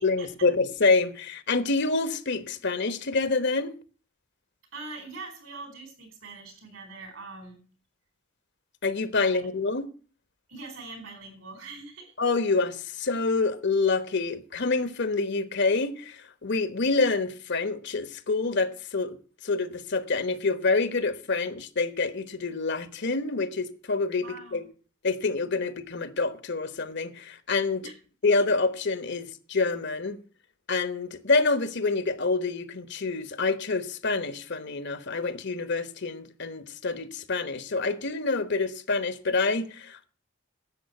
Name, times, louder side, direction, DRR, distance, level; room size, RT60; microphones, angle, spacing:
voice 1, 0.0-3.7 8.8-9.9 12.2-19.2 19.4-24.6 25.0-27.8 28.2-30.2 30.7-40.1, left 3 dB, 60° left, 1.2 m, -27 dB
voice 2, 4.7-7.6 9.2-9.5 10.5-12.1 24.2-24.6 27.8-27.9, right 3 dB, 70° right, 4.8 m, -43 dB
11.0 x 8.0 x 8.0 m
head